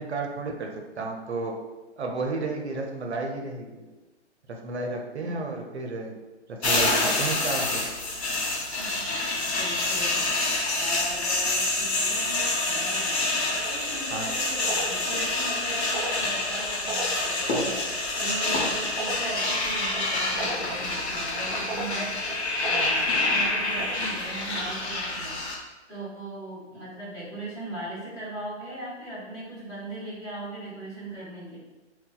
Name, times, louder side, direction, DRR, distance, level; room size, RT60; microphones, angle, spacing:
voice 1, 0.0-1.6 2.0-3.8 4.5-6.2 6.5-7.9 14.1-14.3, right 3 dB, 65° right, 2 dB, 0.6 m, -32 dB
voice 2, 5.2-5.5 8.7-25.4 25.9-31.6, right 2 dB, 10° left, -10 dB, 0.8 m, -39 dB
sound 1, 6.6-25.6, left 2 dB, 65° left, 0.8 m, -27 dB
sound 2, 13.5-24.4, right 2 dB, 15° right, 1.0 m, -39 dB
3.9 x 2.2 x 2.2 m, 1.2 s
figure-of-eight pair, 125°, 35 cm